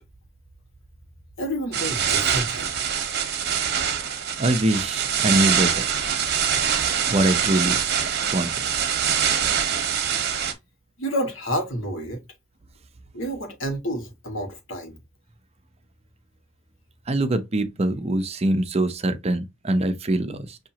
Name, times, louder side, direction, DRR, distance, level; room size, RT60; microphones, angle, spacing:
voice 1, 1.4-2.7 11.0-12.2 13.1-15.0, equal, 90° left, 1.5 m, -29 dB
sound 1, 1.7-10.5, right 8 dB, 55° right, 1.0 m, -24 dB
voice 2, 4.4-5.9 7.1-7.8 8.3-8.6 17.1-20.6, right 1 dB, 35° right, 0.6 m, -23 dB
5.9 x 2.9 x 2.8 m
head